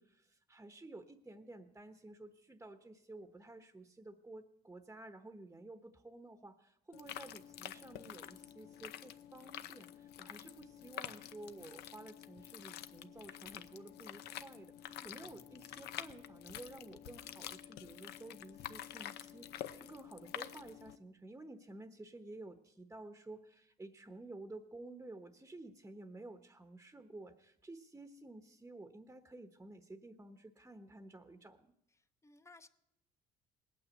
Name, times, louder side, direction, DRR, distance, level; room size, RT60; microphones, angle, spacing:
voice 1, 0.0-31.6, right 2 dB, 15° right, 7 dB, 1.0 m, -52 dB
sound 1, 6.9-21.0, left 11 dB, 75° left, 0.8 m, -48 dB
voice 2, 14.8-15.2 31.9-32.7, left 3 dB, 15° left, 11 dB, 0.9 m, -61 dB
Bowed string instrument, 15.2-19.1, left 4 dB, 50° left, 1.3 m, -70 dB
19.5 x 9.0 x 8.2 m, 0.79 s
cardioid pair, 110°, 17 cm